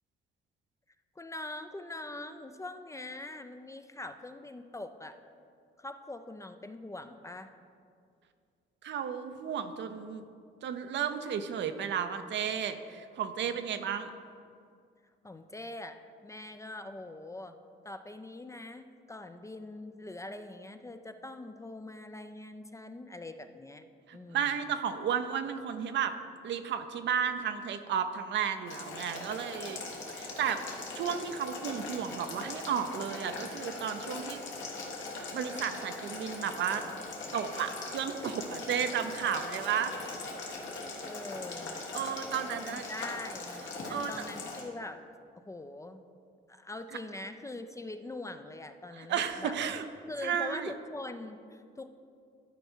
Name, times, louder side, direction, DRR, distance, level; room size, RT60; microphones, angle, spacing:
voice 1, 1.2-5.2 5.8-7.5 15.2-17.6 17.8-23.8 24.1-24.6 41.1-41.8 42.5-45.0 45.4-46.1 46.5-49.6 50.1-51.9, left 2 dB, 15° left, 9 dB, 0.4 m, -43 dB
voice 2, 8.8-10.2 10.6-14.1 24.1-26.1 26.4-29.8 30.1-34.4 35.3-36.8 37.3-39.9 41.9-42.8 43.9-44.1 48.9-49.9 50.2-50.7, right 8 dB, 65° right, 9 dB, 0.6 m, -33 dB
Boiling, 28.7-44.6, left 3 dB, 70° left, 1.5 m, -41 dB
11.5 x 4.5 x 4.4 m, 2.3 s
cardioid pair, 90°, 20 cm